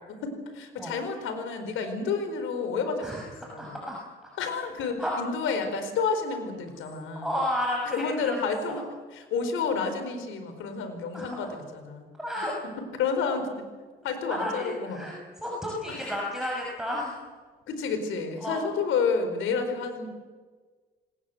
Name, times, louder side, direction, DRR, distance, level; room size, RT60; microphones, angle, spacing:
voice 1, 0.2-3.8 4.4-7.3 7.9-8.8 9.1-12.1 12.4-13.5 14.0-15.1 15.9-16.3 17.7-20.1, left 5 dB, 85° left, 8 dB, 4.6 m, -30 dB
voice 2, 3.6-4.0 5.0-5.1 7.2-8.4 8.7-8.8 11.1-11.5 12.2-12.5 14.3-15.2 15.4-17.1 18.4-18.7, equal, ahead, -3 dB, 6.2 m, -32 dB
27.5 x 19.0 x 8.0 m, 1.4 s
cardioid pair, 90°, 20 cm